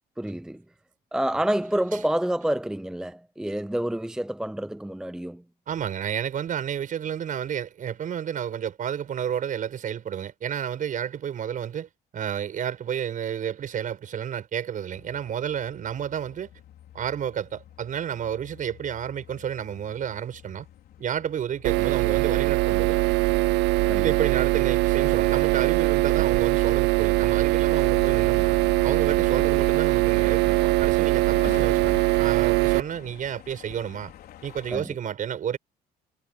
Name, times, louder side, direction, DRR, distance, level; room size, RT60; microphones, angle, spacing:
voice 1, 0.2-0.6 1.1-5.4 23.9-24.1 34.7-34.9, right 1 dB, 5° right, 0.6 m, -28 dB
voice 2, 5.7-16.5 16.9-20.7 21.0-23.0 24.0-28.6 28.8-34.1 34.4-35.6, right 9 dB, 50° right, 6.5 m, -31 dB
sound 1, 14.9-34.8, left 12 dB, 65° left, 4.4 m, -46 dB
sound 2, 21.6-32.8, right 22 dB, 85° right, 0.4 m, -22 dB
cardioid pair, 110°, 17 cm